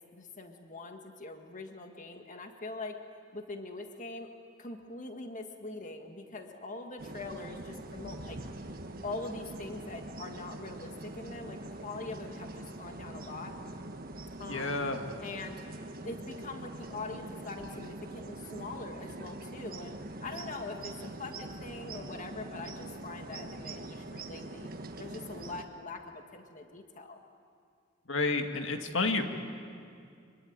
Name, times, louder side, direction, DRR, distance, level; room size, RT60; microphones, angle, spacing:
voice 1, 0.0-3.0 3.3-4.3 4.6-8.4 9.0-13.6 14.4-14.8 15.2-15.6 16.0-20.0 20.2-24.7 25.0-27.2, left 3 dB, 40° left, 4 dB, 1.8 m, -43 dB
sound 1, 7.0-25.7, right 2 dB, 50° right, 1.5 m, -43 dB
voice 2, 14.5-15.0 28.1-29.2, left 3 dB, 70° left, 5 dB, 2.1 m, -30 dB
25.0 x 23.5 x 9.5 m, 2.3 s
head